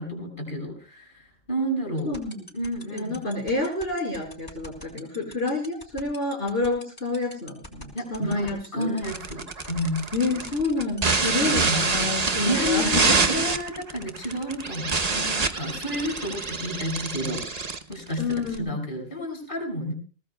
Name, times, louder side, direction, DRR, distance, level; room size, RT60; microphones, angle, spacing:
voice 1, 0.0-2.2 2.5-3.2 7.9-10.0 11.2-11.9 12.4-17.6 17.9-19.9, equal, 55° left, 2 dB, 6.4 m, -31 dB
voice 2, 2.0-2.4 2.9-8.9 10.1-13.1 18.2-18.7, left 2 dB, 75° left, -2 dB, 5.0 m, -28 dB
sound 1, 2.0-12.8, equal, 20° left, 5.1 m, -42 dB
sound 2, 9.0-18.6, right 4 dB, 40° right, 1.0 m, -26 dB
22.5 x 19.0 x 2.3 m, 0.37 s
omnidirectional pair, 1.0 m